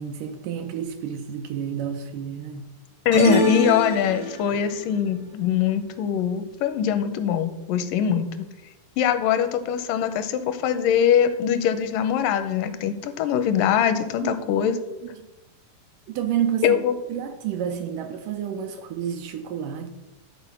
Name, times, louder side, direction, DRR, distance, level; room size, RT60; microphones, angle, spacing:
voice 1, 0.0-2.7 14.2-14.4 14.7-14.8 15.1-15.3 16.1-16.8 17.1-19.9, right 9 dB, 80° right, 5 dB, 2.0 m, -30 dB
voice 2, 3.1-8.5 9.0-14.8 16.6-16.9, left 9 dB, 85° left, 10 dB, 2.2 m, -22 dB
sound 1, 3.1-4.7, equal, 60° right, 1.0 m, -24 dB
11.0 x 4.4 x 5.9 m, 0.99 s
omnidirectional pair, 4.0 m